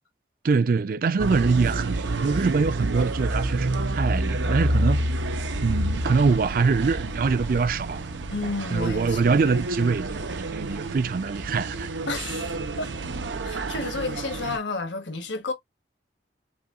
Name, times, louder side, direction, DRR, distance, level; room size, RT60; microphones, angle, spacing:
voice 1, 0.4-5.0 5.6-8.0 8.7-11.9, right 4 dB, 50° right, 0.4 m, -24 dB
sound 1, 1.2-14.6, right 1 dB, 85° right, 0.7 m, -29 dB
voice 2, 8.3-9.5 12.1-12.5 12.8-12.9 13.4-15.5, left 3 dB, 85° left, 1.1 m, -31 dB
5.7 x 2.3 x 2.4 m
head